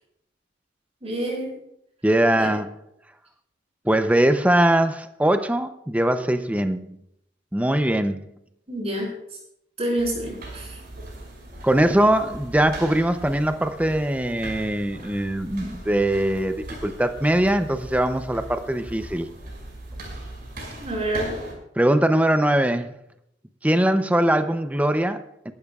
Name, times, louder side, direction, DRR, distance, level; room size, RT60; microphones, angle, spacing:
voice 1, 1.0-1.5 2.4-2.5 8.7-9.1 9.8-10.8 20.8-21.3, right 1 dB, 35° right, -1 dB, 6.0 m, -27 dB
voice 2, 2.0-2.7 3.9-7.0 7.5-8.3 11.6-16.6 16.8-19.3 21.8-22.9 23.6-25.5, right 1 dB, 10° right, 9 dB, 0.6 m, -21 dB
sound 1, 10.0-21.5, right 1 dB, 55° right, 5.9 m, -39 dB
23.0 x 12.0 x 2.4 m, 0.78 s
head